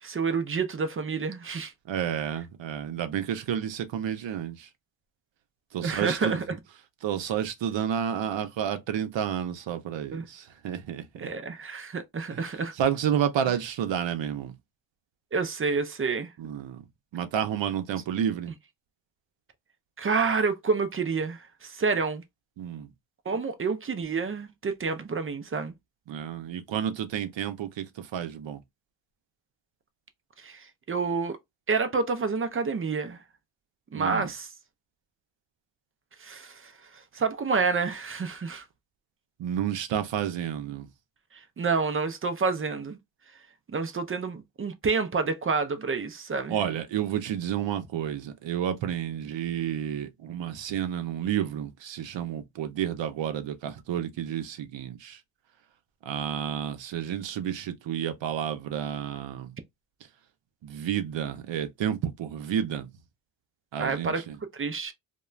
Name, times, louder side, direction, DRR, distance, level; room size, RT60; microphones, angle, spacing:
voice 1, 0.0-1.7 5.8-6.4 10.1-10.2 11.2-12.7 15.3-16.3 20.0-22.2 23.3-25.7 30.4-31.4 31.7-33.2 33.9-34.5 36.2-38.6 41.3-43.0 43.7-46.6 63.8-64.2 64.5-64.9, right 4 dB, 30° right, 0.4 m, -29 dB
voice 2, 1.9-4.7 5.7-6.4 7.0-11.3 12.3-14.5 16.4-16.8 17.1-18.5 22.6-22.9 26.1-28.6 33.9-34.3 39.4-40.9 46.5-55.2 56.1-59.5 60.6-62.9 63.7-64.4, right 9 dB, 65° right, 0.7 m, -30 dB
2.3 x 2.2 x 3.1 m
cardioid pair, 100°, 48 cm